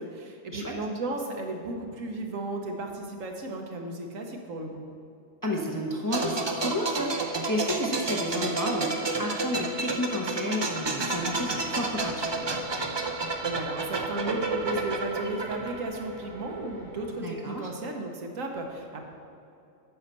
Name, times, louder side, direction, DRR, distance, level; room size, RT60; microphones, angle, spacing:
voice 1, 0.0-4.9 13.4-19.0, right 2 dB, 75° right, 2 dB, 1.4 m, -34 dB
voice 2, 5.4-12.6 17.2-17.7, left 1 dB, 20° left, -2 dB, 0.8 m, -31 dB
sound 1, 6.1-16.7 17.0-17.2, right 3 dB, 35° right, 0.4 m, -31 dB
sound 2, 11.1-17.1, equal, 55° left, 2.1 m, -50 dB
8.4 x 5.6 x 6.7 m, 2.7 s
omnidirectional pair, 1.4 m